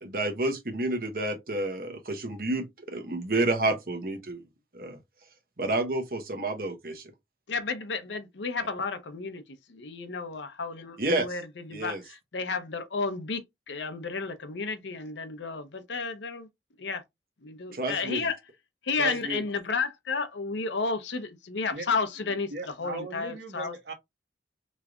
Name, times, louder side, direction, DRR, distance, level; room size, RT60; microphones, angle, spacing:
voice 1, 0.0-4.4 4.7-5.0 5.6-7.1 11.0-11.4 11.7-12.0 17.7-18.3 19.0-19.4, right 2 dB, 55° right, 1.0 m, -30 dB
voice 2, 7.5-9.4 9.7-16.5 16.8-17.0 17.4-18.3 18.8-22.5 22.8-23.7, left 4 dB, 85° left, 0.7 m, -32 dB
voice 3, 22.5-23.9, right 3 dB, 75° right, 1.1 m, -38 dB
3.4 x 3.1 x 2.4 m
head